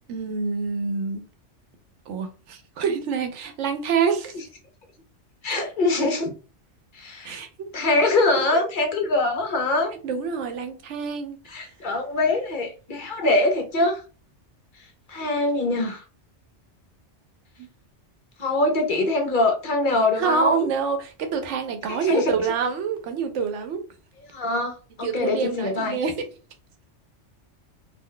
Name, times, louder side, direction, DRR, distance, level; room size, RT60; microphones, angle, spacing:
voice 1, 0.1-1.2 2.1-4.3 7.2-7.7 8.5-8.6 10.0-11.4 17.6-17.7 20.2-23.8 25.0-26.1, right 5 dB, 85° right, 1.0 m, -26 dB
voice 2, 5.4-6.3 6.9-7.4 7.7-9.9 11.5-14.0 15.1-16.0 18.4-20.7 22.0-22.3 24.3-26.0, left 2 dB, 55° left, 0.7 m, -23 dB
2.4 x 2.1 x 3.8 m
omnidirectional pair, 1.2 m